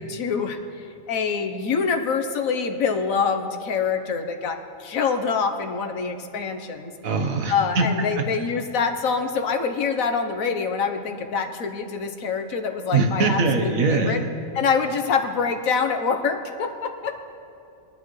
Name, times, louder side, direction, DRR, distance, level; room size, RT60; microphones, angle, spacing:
voice 1, 0.0-6.9 7.5-14.2 14.5-17.1, left 5 dB, 90° left, 6 dB, 1.4 m, -25 dB
voice 2, 7.0-7.9 12.9-14.3, right 3 dB, 80° right, 4 dB, 1.6 m, -22 dB
22.0 x 11.5 x 3.2 m, 2.7 s
omnidirectional pair, 1.4 m